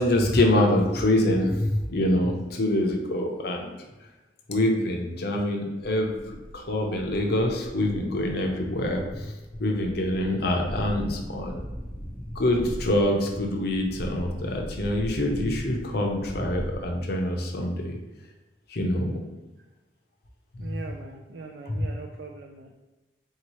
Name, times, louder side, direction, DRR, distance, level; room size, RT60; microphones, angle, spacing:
voice 1, 0.0-3.7 4.5-9.3 9.6-11.7 12.3-18.0 18.7-19.1 20.7-20.8 21.7-21.9, left 1 dB, 60° left, 2 dB, 0.6 m, -25 dB
sound 1, 6.1-16.9, equal, 15° left, 0.7 m, -39 dB
voice 2, 20.6-22.8, right 3 dB, 75° right, 2 dB, 0.3 m, -41 dB
4.2 x 2.8 x 3.0 m, 1.1 s
head